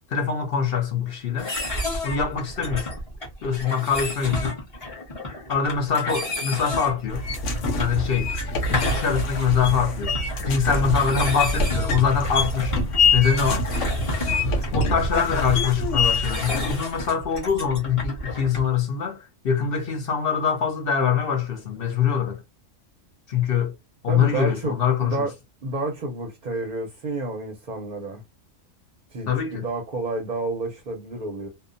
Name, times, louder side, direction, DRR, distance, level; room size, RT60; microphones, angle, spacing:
voice 1, 0.1-1.5 2.0-2.9 3.4-4.6 5.5-7.2 7.8-8.3 8.7-10.2 10.5-12.7 13.1-13.6 14.7-22.4 23.3-23.7 24.0-25.3 29.3-29.6, left 7 dB, 60° left, 0.7 m, -24 dB
sound 1, 1.4-18.8, left 1 dB, 30° left, 0.9 m, -32 dB
sound 2, 7.1-16.7, left 2 dB, 75° left, 1.0 m, -25 dB
voice 2, 24.1-25.3 25.6-28.2 29.1-31.5, right 2 dB, 50° right, 0.5 m, -30 dB
2.6 x 2.2 x 2.4 m
omnidirectional pair, 1.3 m